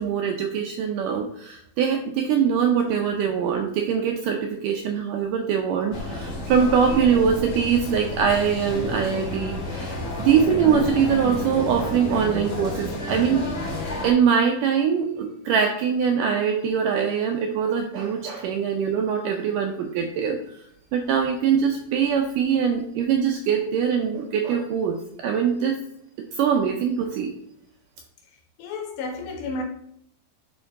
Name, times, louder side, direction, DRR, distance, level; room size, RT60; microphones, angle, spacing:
voice 1, 0.0-13.4 14.0-20.6 20.9-25.8 26.3-27.3, right 7 dB, 80° right, 3 dB, 1.9 m, -23 dB
sound 1, 5.9-14.1, left 1 dB, 40° left, 2.9 m, -30 dB
voice 2, 28.6-29.6, left 3 dB, 75° left, 3 dB, 2.6 m, -31 dB
11.0 x 4.4 x 3.6 m, 0.73 s
omnidirectional pair, 4.5 m